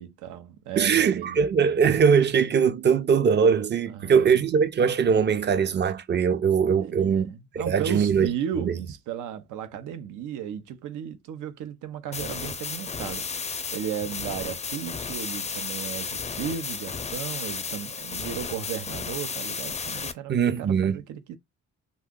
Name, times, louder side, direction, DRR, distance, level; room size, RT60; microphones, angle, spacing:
voice 1, 0.0-1.4 3.9-4.4 6.8-21.4, right 9 dB, 85° right, 0.7 m, -35 dB
voice 2, 0.8-7.3 7.7-8.3 8.6-8.7 20.3-21.0, right 6 dB, 35° right, 0.5 m, -21 dB
sound 1, 12.1-20.1, left 5 dB, 20° left, 0.5 m, -33 dB
2.6 x 2.3 x 3.6 m
cardioid pair, 90°, 30 cm